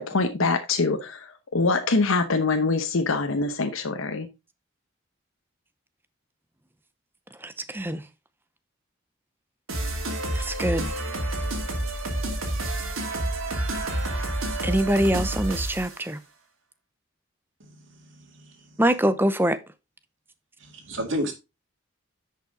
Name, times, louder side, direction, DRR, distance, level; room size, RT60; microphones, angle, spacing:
voice 1, 0.0-4.3, left 3 dB, 90° left, 1.0 m, -24 dB
voice 2, 7.4-8.0 10.3-10.9 14.6-16.2 18.8-19.6, right 1 dB, 10° right, 0.6 m, -24 dB
sound 1, 9.7-16.0, right 1 dB, 85° right, 2.5 m, -29 dB
voice 3, 17.6-18.6 20.6-21.3, equal, 70° right, 2.3 m, -33 dB
10.5 x 5.6 x 3.8 m
head